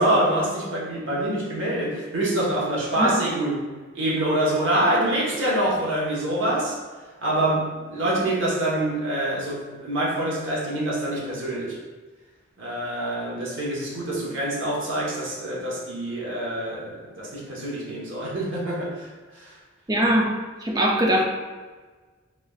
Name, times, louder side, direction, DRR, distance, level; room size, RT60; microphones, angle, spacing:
voice 1, 0.0-3.6 3.9-6.8 7.2-11.8 12.6-19.6, right 1 dB, 65° right, -4 dB, 1.0 m, -25 dB
voice 2, 19.9-20.3 20.6-21.2, equal, 20° right, -1 dB, 0.4 m, -21 dB
3.7 x 3.2 x 2.3 m, 1.3 s
head